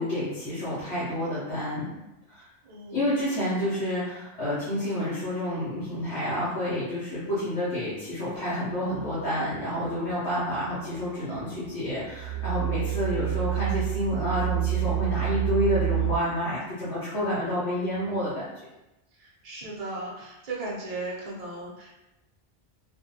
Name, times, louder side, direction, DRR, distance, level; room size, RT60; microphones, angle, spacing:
voice 1, 0.0-1.9 2.3-2.5 2.9-18.5, left 1 dB, 75° left, -10 dB, 1.1 m, -29 dB
voice 2, 2.6-3.1 19.2-21.9, right 2 dB, 40° right, -4 dB, 0.6 m, -36 dB
sound 1, 8.9-16.2, right 15 dB, 75° right, 0.9 m, -30 dB
2.5 x 2.3 x 2.7 m, 0.96 s
omnidirectional pair, 1.2 m